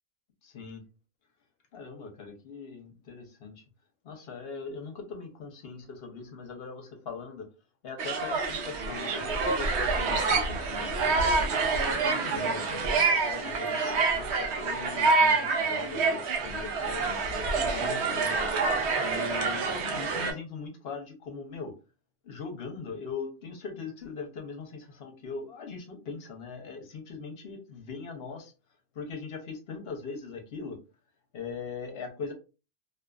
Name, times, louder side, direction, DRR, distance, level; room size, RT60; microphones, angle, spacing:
voice 1, 0.4-0.8 1.7-3.6 4.0-7.5 7.8-11.4 12.1-18.4 19.0-21.7 22.2-28.5 28.9-30.8 31.3-32.3, left 5 dB, 70° left, 4 dB, 0.9 m, -41 dB
sound 1, 8.0-20.3, right 4 dB, 85° right, 0.9 m, -27 dB
2.5 x 2.4 x 2.2 m, 0.32 s
omnidirectional pair, 1.1 m